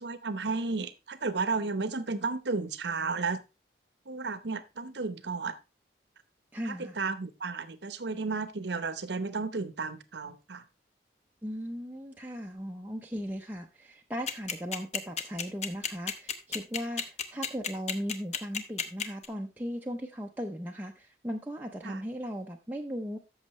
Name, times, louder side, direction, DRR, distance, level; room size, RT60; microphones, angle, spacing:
voice 1, 0.0-3.4 4.1-5.6 6.6-10.6 21.8-22.0, right 4 dB, 70° right, 13 dB, 0.8 m, -33 dB
voice 2, 6.5-6.9 11.4-23.2, equal, 10° right, 1 dB, 0.6 m, -37 dB
sound 1, 14.3-19.3, left 6 dB, 40° left, 0.9 m, -31 dB
13.5 x 6.3 x 3.1 m, 0.27 s
head